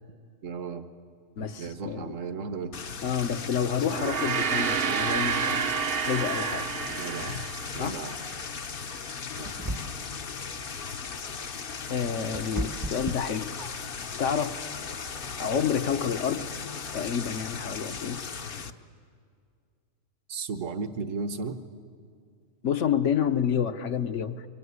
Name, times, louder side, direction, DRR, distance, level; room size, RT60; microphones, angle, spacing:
voice 1, 0.4-0.9 1.6-2.7 6.9-7.4 7.7-8.2 9.4-9.5 20.3-21.6, right 4 dB, 65° right, 10 dB, 1.4 m, -35 dB
voice 2, 1.4-2.1 3.0-5.6 6.1-6.7 7.8-8.0 11.9-13.5 14.2-14.6 15.4-16.5 16.9-18.2 22.6-24.4, left 8 dB, 65° left, 9 dB, 1.3 m, -29 dB
sound 1, 2.7-18.7, left 6 dB, 45° left, 0.9 m, -37 dB
Gong, 3.8-8.4, right 6 dB, 50° right, 0.9 m, -29 dB
sound 2, 9.4-10.2 11.7-14.0, right 1 dB, 20° right, 0.8 m, -35 dB
25.0 x 23.5 x 9.6 m, 2.2 s
omnidirectional pair, 1.4 m